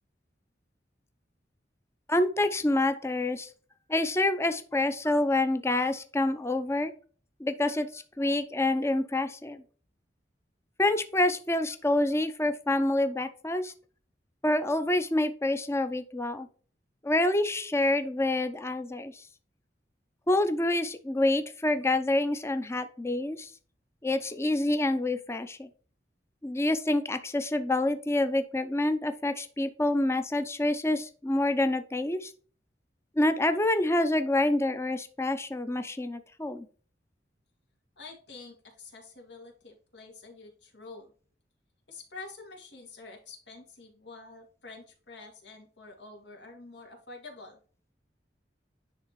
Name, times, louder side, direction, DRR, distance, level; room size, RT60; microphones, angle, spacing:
voice 1, 2.1-3.5 3.9-6.9 7.4-9.6 10.8-13.7 14.4-16.5 17.0-19.1 20.3-23.5 24.0-25.7 26.4-32.3 33.2-36.7, left 1 dB, 15° left, 9 dB, 0.6 m, -27 dB
voice 2, 38.0-41.1 41.9-47.6, left 3 dB, 85° left, 1 dB, 2.4 m, -47 dB
10.5 x 3.5 x 3.1 m, 0.41 s
head